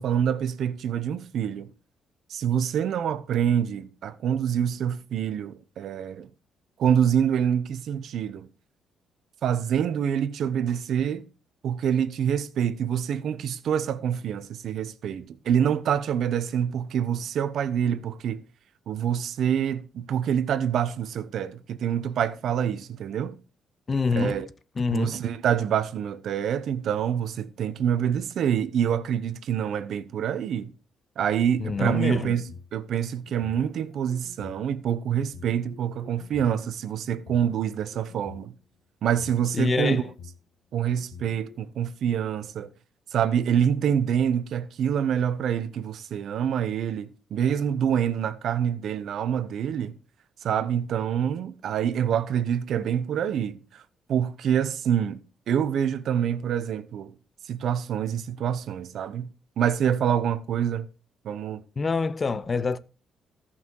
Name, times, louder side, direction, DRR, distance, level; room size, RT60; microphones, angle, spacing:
voice 1, 0.0-1.7 2.3-6.3 6.8-8.5 9.4-11.2 11.6-18.4 18.9-23.4 24.2-24.5 24.9-30.7 31.2-32.5 32.7-38.5 39.0-40.0 40.7-42.7 43.1-49.9 50.4-53.6 54.1-55.2 55.5-57.1 57.5-60.9 61.2-61.6, right 9 dB, 70° right, 0.9 m, -26 dB
voice 2, 23.9-24.4 24.8-25.2 31.6-32.3 39.5-40.1 61.8-62.8, left 4 dB, 35° left, 0.8 m, -26 dB
sound 1, 31.6-32.7 33.2-34.5 35.2-36.5 37.1-38.5 39.0-40.4 40.9-41.6, left 6 dB, 80° left, 1.9 m, -47 dB
14.0 x 5.8 x 4.6 m
cardioid pair, 90°, 0 cm